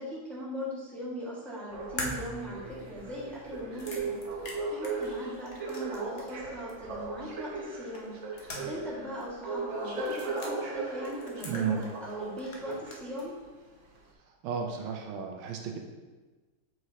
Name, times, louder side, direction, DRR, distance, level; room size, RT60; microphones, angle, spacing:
voice 1, 0.0-4.2 4.7-8.2 8.6-13.3, equal, ahead, -8 dB, 1.3 m, -39 dB
sound 1, 1.7-13.3 13.9-14.0, right 3 dB, 55° right, 0.8 m, -38 dB
sound 2, 2.0-6.4 6.7-6.8 7.9-8.9 9.2-9.3 10.0-10.5 11.0-12.1 12.4-13.3, left 2 dB, 80° left, 0.5 m, -42 dB
voice 2, 11.4-11.8 14.4-15.8, right 7 dB, 80° right, 2 dB, 1.5 m, -33 dB
7.6 x 4.7 x 2.8 m, 1.3 s
omnidirectional pair, 2.3 m